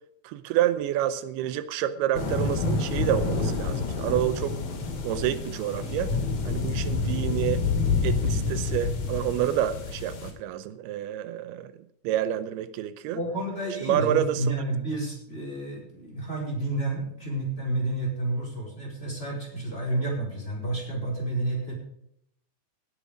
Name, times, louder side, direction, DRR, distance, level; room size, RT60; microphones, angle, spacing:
voice 1, 0.2-4.6 5.0-6.1 6.4-7.7 8.0-11.7 12.0-13.2 13.8-14.6, right 11 dB, 85° right, 13 dB, 2.6 m, -28 dB
sound 1, 2.1-10.3, left 4 dB, 65° left, 4.1 m, -28 dB
voice 2, 13.1-21.7, right 2 dB, 15° left, -1 dB, 4.4 m, -30 dB
18.0 x 9.0 x 5.1 m, 0.76 s
omnidirectional pair, 4.5 m